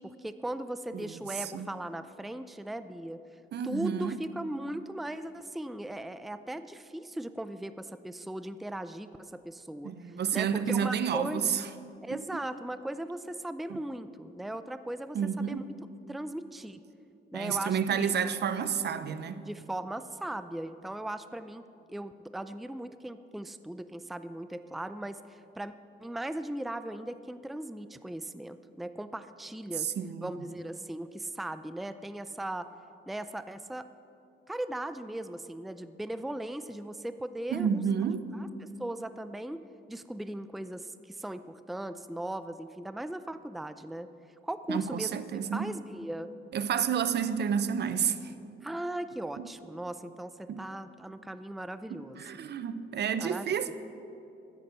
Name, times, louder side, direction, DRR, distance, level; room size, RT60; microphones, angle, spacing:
voice 1, 0.0-3.2 3.6-11.5 12.0-15.6 16.1-16.8 17.3-18.1 19.5-21.6 21.9-25.7 26.0-29.9 30.2-32.7 33.1-33.9 34.5-37.9 38.3-44.1 44.4-45.2 45.5-46.3 48.6-52.2 53.2-53.7, right 1 dB, ahead, 0.5 m, -38 dB
voice 2, 0.9-1.7 3.5-4.2 9.8-11.6 12.1-12.2 13.7-13.8 15.1-15.7 17.3-19.5 29.8-30.3 37.5-38.3 44.7-45.6 46.5-48.3 49.4-49.5 50.5-50.6 51.9-53.7, right 7 dB, 60° right, 0.8 m, -30 dB
14.5 x 9.7 x 6.8 m
cardioid pair, 90°, 20 cm